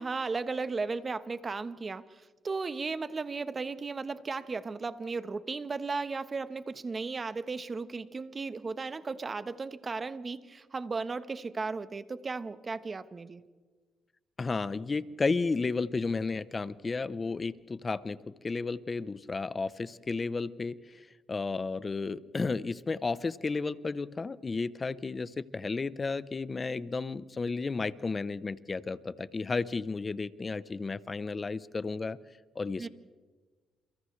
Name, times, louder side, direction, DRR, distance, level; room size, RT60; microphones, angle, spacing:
voice 1, 0.0-13.4 32.8-32.9, right 4 dB, 30° right, 12 dB, 1.1 m, -35 dB
voice 2, 14.4-32.2 32.5-32.9, left 4 dB, 30° left, 16 dB, 0.8 m, -33 dB
29.5 x 28.5 x 3.3 m, 1.4 s
cardioid pair, 90°, 0 cm